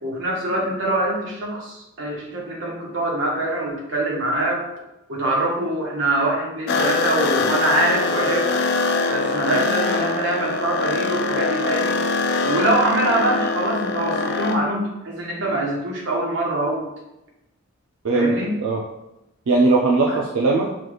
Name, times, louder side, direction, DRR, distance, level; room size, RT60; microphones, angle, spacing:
voice 1, 0.0-4.7 5.1-8.5 9.1-12.0 12.4-16.8 18.1-18.5 20.1-20.2, right 1 dB, 60° right, -3 dB, 1.1 m, -24 dB
sound 1, 6.7-14.6, left 3 dB, 50° left, 0.3 m, -23 dB
voice 2, 19.5-20.7, right 3 dB, 75° right, -1 dB, 0.4 m, -19 dB
5.6 x 2.3 x 3.2 m, 0.92 s
head